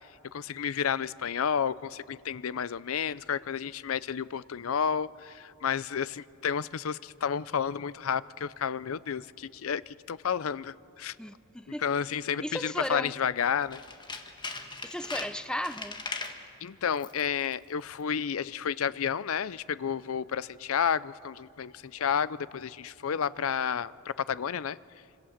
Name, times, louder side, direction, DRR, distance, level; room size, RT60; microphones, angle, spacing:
voice 1, 0.3-11.2 11.8-13.8 16.6-24.8, left 7 dB, 75° left, 0.5 m, -31 dB
voice 2, 11.2-11.9 12.4-13.1 14.8-16.0, left 1 dB, 5° left, 0.6 m, -35 dB
Tools, 13.6-16.4 16.9-17.3 17.5-17.6, left 3 dB, 20° left, 1.5 m, -39 dB
26.0 x 26.0 x 7.3 m
head